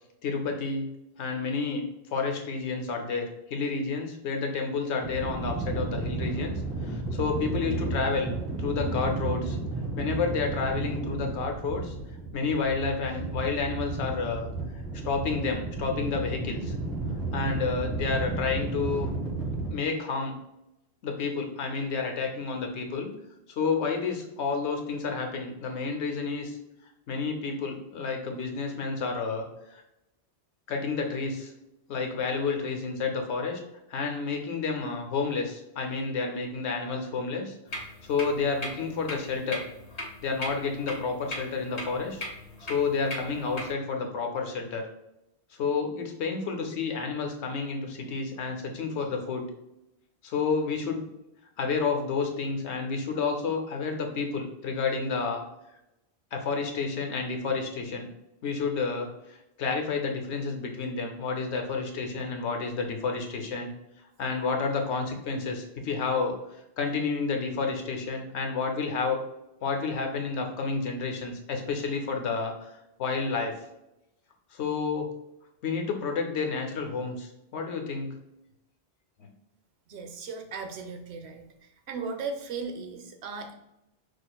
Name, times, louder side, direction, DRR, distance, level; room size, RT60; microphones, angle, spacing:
voice 1, 0.2-0.9 1.2-8.3 8.6-9.6 10.0-11.9 12.3-14.5 15.0-16.7 17.3-19.1 19.5-20.4 21.0-23.1 23.5-26.6 27.1-29.8 30.7-31.5 31.9-33.6 33.9-39.6 40.2-42.2 42.7-44.9 45.5-49.5 50.2-51.0 51.6-55.4 56.3-58.1 58.4-63.7 64.2-66.4 66.8-69.2 69.6-72.7 73.0-73.5 74.5-75.1 75.6-78.1 79.2-79.3, left 4 dB, 90° left, 3 dB, 1.0 m, -30 dB
sound 1, 5.0-19.7, right 3 dB, 15° right, 1.2 m, -33 dB
sound 2, 37.7-43.7, left 1 dB, 40° left, 0.8 m, -39 dB
voice 2, 79.9-81.5 81.9-83.5, right 4 dB, 75° right, 6 dB, 0.8 m, -36 dB
6.3 x 2.4 x 2.3 m, 0.89 s
omnidirectional pair, 1.1 m